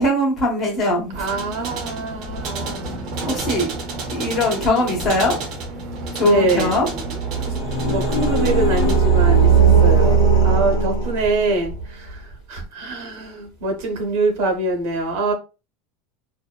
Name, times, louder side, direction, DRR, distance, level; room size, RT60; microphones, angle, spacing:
voice 1, 0.0-1.3 3.3-3.7 4.1-5.4 6.1-6.9, left 2 dB, 35° left, 1.0 m, -20 dB
sound 1, 1.1-9.0, right 2 dB, 45° right, 0.7 m, -30 dB
voice 2, 1.1-3.1 4.8-4.9 6.2-6.7 7.4-7.5 7.8-15.3, right 3 dB, 75° right, 0.9 m, -24 dB
sound 2, 7.0-11.7, right 5 dB, 70° left, 0.8 m, -17 dB
2.6 x 2.1 x 2.2 m
supercardioid pair, 145°, 0 cm